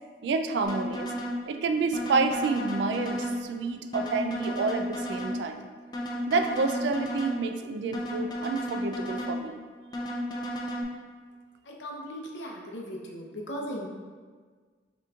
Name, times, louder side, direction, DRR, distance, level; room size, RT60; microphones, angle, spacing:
voice 1, 0.2-1.1 1.5-5.7 6.3-9.6, right 4 dB, 70° right, 7 dB, 0.3 m, -29 dB
sound 1, 0.6-1.4 1.9-3.4 3.9-5.4 5.9-7.4 7.9-9.4 9.9-10.8, equal, 25° left, 0.4 m, -33 dB
voice 2, 11.7-13.9, equal, 85° left, -1 dB, 0.7 m, -37 dB
5.7 x 3.0 x 2.4 m, 1.6 s
head